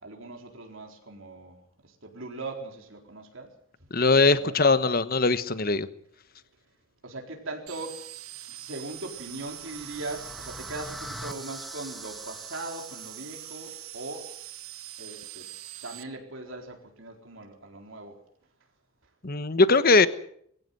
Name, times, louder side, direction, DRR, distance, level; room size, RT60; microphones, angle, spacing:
voice 1, 0.0-1.6 1.8-3.5 4.2-4.5 7.0-8.0 8.5-14.3 15.0-15.5 15.8-18.2, right 2 dB, 65° right, 3 dB, 4.2 m, -40 dB
voice 2, 3.9-5.9 19.2-20.1, left 3 dB, 45° left, 14 dB, 1.2 m, -21 dB
sound 1, 7.7-16.0, right 14 dB, 85° right, 1.3 m, -43 dB
sound 2, 8.7-13.8, equal, ahead, 1.2 m, -44 dB
22.5 x 16.0 x 8.0 m, 0.67 s
head